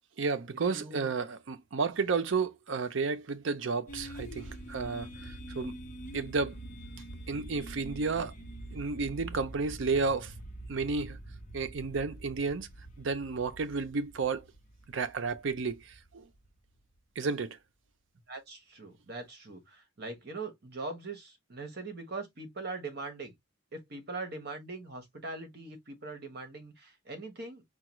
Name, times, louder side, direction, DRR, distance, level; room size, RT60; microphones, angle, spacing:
voice 1, 0.2-5.8 6.1-6.6 7.3-8.3 8.7-10.3 10.7-11.2 11.5-12.7 13.0-14.5 14.9-16.2 17.2-17.6, right 4 dB, 70° right, 0.5 m, -32 dB
voice 2, 0.7-1.1 18.3-23.3 23.7-27.6, right 3 dB, 50° right, 1.2 m, -41 dB
sound 1, 3.9-16.8, right 1 dB, 40° left, 0.8 m, -45 dB
4.7 x 2.3 x 3.0 m
head